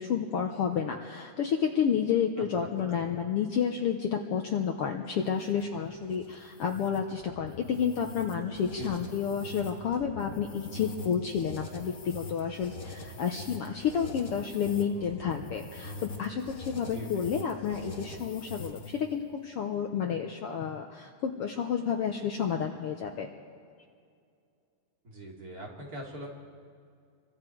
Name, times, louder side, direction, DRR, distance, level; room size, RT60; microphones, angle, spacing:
voice 1, 0.0-23.3, left 7 dB, 70° left, 3 dB, 1.4 m, -30 dB
sound 1, 5.2-19.1, left 2 dB, 35° left, 1.5 m, -44 dB
voice 2, 8.8-9.1 16.9-17.3 25.0-26.3, right 1 dB, 30° right, -2 dB, 3.1 m, -41 dB
28.0 x 24.5 x 4.6 m, 2.3 s
omnidirectional pair, 3.7 m